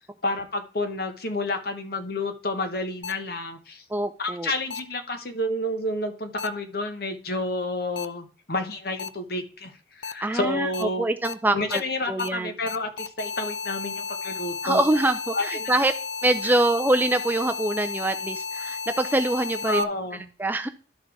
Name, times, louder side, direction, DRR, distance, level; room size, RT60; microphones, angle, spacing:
voice 1, 0.2-3.8 4.2-11.1 11.5-14.8 15.3-15.7 16.4-16.5 19.7-20.3, left 2 dB, 55° left, 8 dB, 1.0 m, -30 dB
sound 1, 3.0-3.1 4.7-4.8 6.4-6.5 8.0-8.1 9.0-9.1 10.0-10.1 10.7-10.8 11.2-11.3 11.7-11.8 12.2-12.3 12.7-19.8, left 5 dB, 70° left, 0.5 m, -33 dB
voice 2, 3.9-4.5 10.2-10.7 11.0-11.8 12.1-12.5 14.6-15.9 16.2-19.9 20.4-20.7, right 2 dB, 10° right, 8 dB, 0.3 m, -24 dB
11.5 x 4.1 x 4.7 m, 0.38 s
head